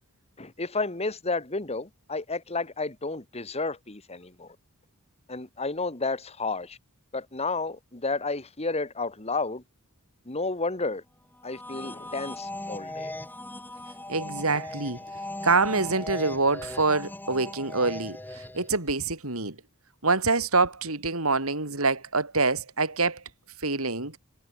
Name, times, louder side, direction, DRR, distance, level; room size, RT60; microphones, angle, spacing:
voice 1, 0.4-4.6 5.3-6.8 7.1-9.6 10.3-11.0 11.4-13.1, left 3 dB, 30° left, 2.1 m, -31 dB
sound 1, 11.4-18.8, left 1 dB, 10° left, 2.6 m, -38 dB
voice 2, 14.1-15.0 15.4-19.6 20.0-23.2 23.6-24.2, right 3 dB, 70° right, 5.1 m, -26 dB
head